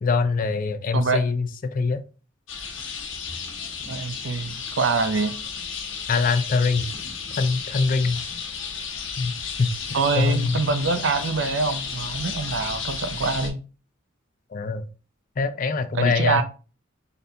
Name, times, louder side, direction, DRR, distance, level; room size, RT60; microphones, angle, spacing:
voice 1, 0.0-2.0 6.1-6.9 7.4-8.2 9.2-9.7 10.2-10.6 14.5-14.9 15.4-16.4, left 4 dB, 45° left, 0.4 m, -23 dB
sound 1, 2.5-13.5, left 6 dB, 70° left, 1.0 m, -33 dB
voice 2, 3.9-5.4 9.9-13.6 15.9-16.4, right 4 dB, 65° right, 0.5 m, -25 dB
4.0 x 3.3 x 2.7 m
head